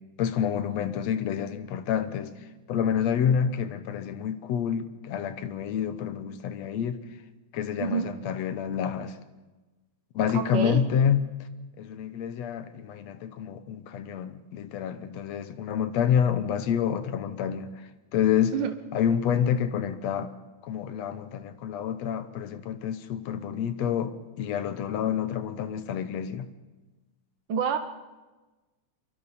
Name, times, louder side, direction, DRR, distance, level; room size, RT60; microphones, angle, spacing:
voice 1, 0.2-7.0 7.5-9.2 10.1-11.5 11.8-18.5 18.9-20.3 20.6-26.5, left 8 dB, 70° left, 1.9 m, -28 dB
voice 2, 10.3-10.8 18.5-18.7 27.5-27.8, right 7 dB, 85° right, 1.0 m, -27 dB
28.0 x 23.5 x 4.2 m
omnidirectional pair, 3.5 m